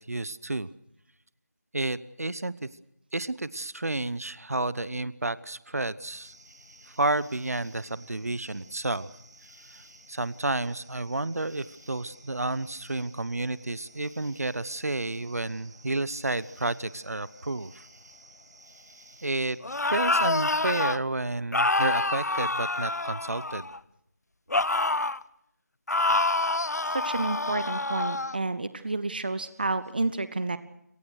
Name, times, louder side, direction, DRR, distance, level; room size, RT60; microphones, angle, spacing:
voice 1, 0.1-0.7 1.7-2.7 3.1-6.3 7.0-9.1 10.1-17.8 19.2-19.6 19.8-23.7, right 2 dB, 60° right, 18 dB, 0.9 m, -31 dB
sound 1, 6.0-19.6, right 1 dB, 85° right, 7.1 m, -54 dB
sound 2, 19.6-21.0 21.5-23.8 24.5-25.2 25.9-28.4, left 2 dB, 70° left, 0.8 m, -27 dB
voice 2, 26.9-30.6, right 3 dB, 35° right, 14 dB, 0.8 m, -30 dB
29.5 x 18.5 x 6.5 m, 0.77 s
figure-of-eight pair, 175°, 9 cm